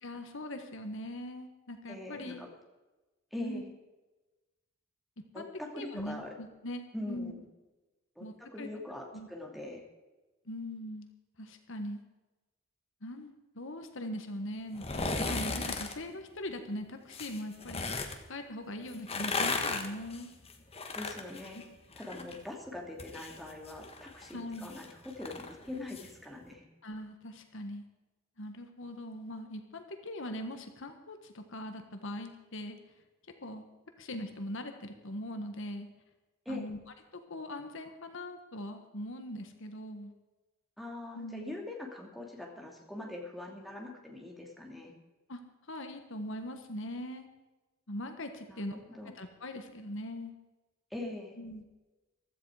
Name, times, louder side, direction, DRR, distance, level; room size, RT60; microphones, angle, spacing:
voice 1, 0.0-2.4 3.4-3.6 5.2-5.4 5.7-6.8 7.1-7.3 8.2-8.7 9.1-9.3 10.5-11.1 11.4-12.0 13.0-17.9 18.3-20.3 21.5-21.6 24.3-24.7 26.8-27.8 28.4-32.8 33.4-33.6 34.0-35.9 36.5-36.8 37.1-40.1 41.1-41.5 45.3-45.4 45.7-47.3 47.9-48.8 49.1-50.3 51.4-51.6, left 1 dB, 65° left, 6 dB, 1.4 m, -41 dB
voice 2, 1.9-2.5 3.3-3.7 5.3-6.3 6.9-7.5 8.2-9.8 20.9-21.6 22.0-26.7 36.4-36.7 40.8-44.9 48.5-49.1 50.9-51.4, left 2 dB, ahead, 0 dB, 2.5 m, -42 dB
sound 1, 14.7-15.9 17.1-18.2 18.9-22.4 22.7-26.1 26.4-26.5, left 3 dB, 30° left, 1.4 m, -36 dB
15.5 x 13.5 x 4.9 m, 1.1 s
head